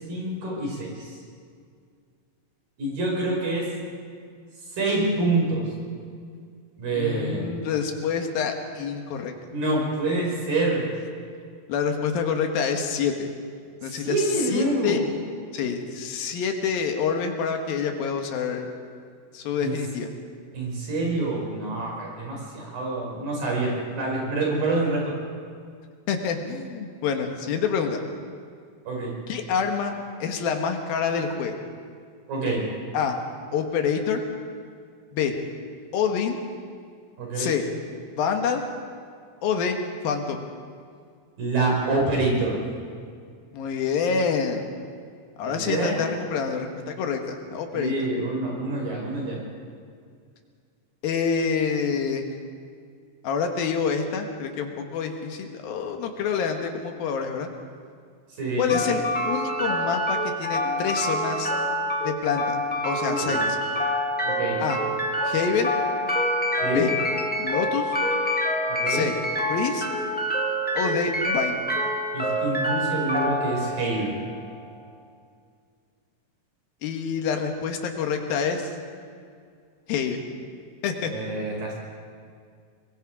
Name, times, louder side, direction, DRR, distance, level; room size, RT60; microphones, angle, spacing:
voice 1, 0.1-1.1 2.8-3.7 4.8-5.6 6.8-7.4 9.5-10.9 13.8-15.0 19.6-19.8 20.5-25.1 28.9-29.1 32.3-32.6 37.2-37.5 41.4-42.6 45.4-46.0 47.7-49.4 58.4-58.8 63.1-63.4 64.2-64.6 66.6-66.9 68.7-69.0 72.1-74.1 81.0-81.7, right 2 dB, 75° right, -2 dB, 7.4 m, -26 dB
voice 2, 6.9-9.3 11.7-13.3 13.8-15.0 15.5-18.7 19.3-20.1 26.1-28.0 29.3-29.9 30.2-31.6 32.9-33.2 33.5-34.2 35.1-35.3 35.9-36.4 37.4-37.6 38.2-38.6 39.4-39.8 40.0-40.4 43.5-44.7 45.4-48.1 51.0-52.2 53.2-57.5 58.6-61.5 62.0-62.6 62.8-63.4 64.6-64.8 65.2-65.7 66.7-66.9 67.4-67.9 68.9-69.2 69.5-69.9 70.7-71.6 76.8-78.7 79.9-80.2 80.8-81.1, left 6 dB, 85° left, 4 dB, 3.3 m, -27 dB
sound 1, 58.7-74.7, equal, 15° left, 0.3 m, -26 dB
24.0 x 22.0 x 4.9 m, 2.2 s
omnidirectional pair, 4.1 m